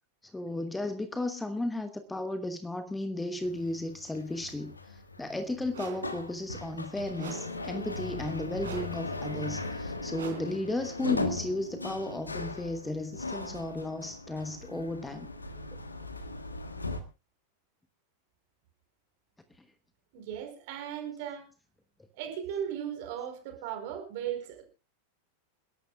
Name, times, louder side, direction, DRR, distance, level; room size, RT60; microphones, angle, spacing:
voice 1, 0.3-15.3, left 2 dB, 5° left, 1.1 m, -34 dB
sound 1, 3.4-17.0, left 2 dB, 80° left, 1.5 m, -38 dB
sound 2, 5.7-6.2 7.2-7.7 8.6-9.1 10.1-10.6, right 6 dB, 65° right, 3.8 m, -43 dB
voice 2, 20.1-21.5 22.2-24.6, right 9 dB, 50° right, 4.6 m, -37 dB
28.0 x 11.5 x 2.3 m
figure-of-eight pair, 90°, 0 cm